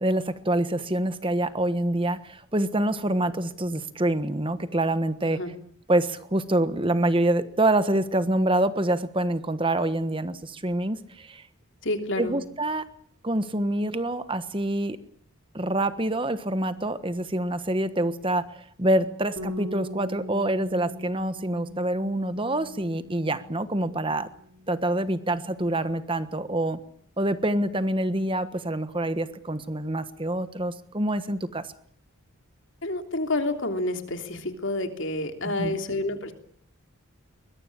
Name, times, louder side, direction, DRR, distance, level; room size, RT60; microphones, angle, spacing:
voice 1, 0.0-5.4 5.9-11.4 12.2-12.9 13.2-15.0 15.5-24.3 24.7-26.8 27.2-31.7 35.5-35.8, right 1 dB, 25° right, 12 dB, 1.3 m, -26 dB
voice 2, 11.8-12.4 32.8-36.3, left 2 dB, 55° left, 6 dB, 3.3 m, -29 dB
Bass guitar, 19.4-24.1 24.3-25.6, left 1 dB, 90° right, 4.4 m, -41 dB
23.0 x 22.0 x 8.8 m, 0.62 s
head